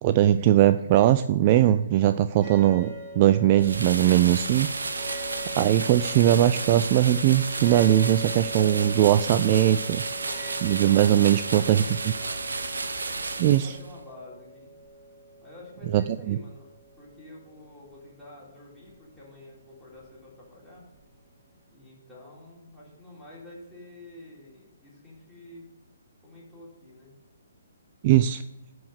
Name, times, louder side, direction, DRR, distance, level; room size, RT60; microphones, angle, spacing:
voice 1, 0.0-4.7 5.6-10.0 10.6-11.8 13.4-13.8 15.9-16.4 28.0-28.4, right 12 dB, 35° right, 12 dB, 0.3 m, -20 dB
sound 1, 2.4-21.7, right 1 dB, 15° right, 2.3 m, -43 dB
sound 2, 3.6-14.0, right 3 dB, 65° right, 0.9 m, -32 dB
voice 2, 10.1-10.6 10.9-12.5 13.2-14.7 15.4-20.8 21.7-25.7 26.2-27.1, left 2 dB, ahead, -9 dB, 3.6 m, -48 dB
10.0 x 4.8 x 6.6 m, 0.92 s
figure-of-eight pair, 130°, 0 cm